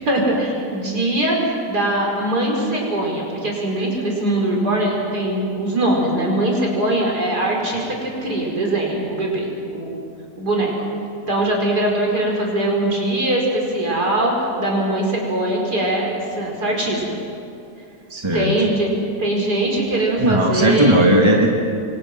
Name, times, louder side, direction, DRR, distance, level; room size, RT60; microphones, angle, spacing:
voice 1, 0.1-1.4 1.7-10.0 10.4-10.7 11.3-17.0 18.3-18.9 19.2-21.0, right 1 dB, 70° right, -1 dB, 5.6 m, -21 dB
voice 2, 18.1-18.5 20.2-21.5, right 1 dB, 15° right, 0 dB, 2.4 m, -16 dB
28.5 x 24.0 x 6.2 m, 2.7 s
omnidirectional pair, 1.7 m